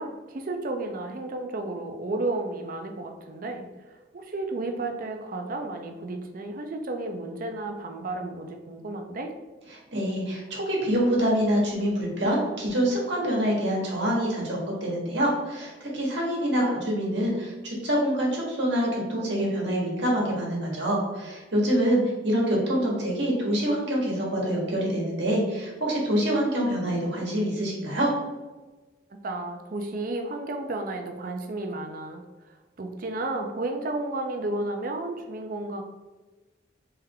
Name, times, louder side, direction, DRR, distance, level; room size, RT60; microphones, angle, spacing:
voice 1, 0.0-9.3 16.6-16.8 29.2-35.8, right 2 dB, 45° right, 5 dB, 0.4 m, -33 dB
voice 2, 9.9-28.1, equal, 60° right, -3 dB, 1.3 m, -26 dB
3.4 x 3.3 x 3.5 m, 1.2 s
head